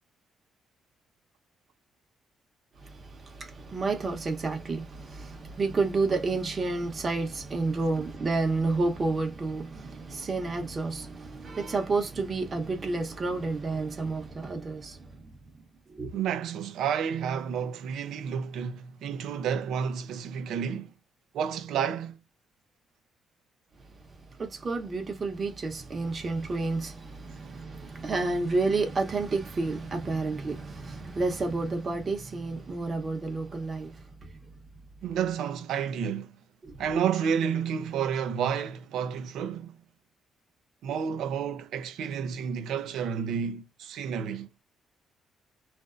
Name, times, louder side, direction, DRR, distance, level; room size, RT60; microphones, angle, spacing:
voice 1, 2.8-15.4 15.9-16.1 24.4-34.3 36.6-36.8, right 3 dB, 35° right, 0.9 m, -30 dB
voice 2, 16.1-20.9 21.3-22.2 35.0-36.3 36.8-39.8 40.8-44.5, right 7 dB, 80° right, 0.5 m, -30 dB
2.5 x 2.0 x 2.5 m
cardioid pair, 90°, 0 cm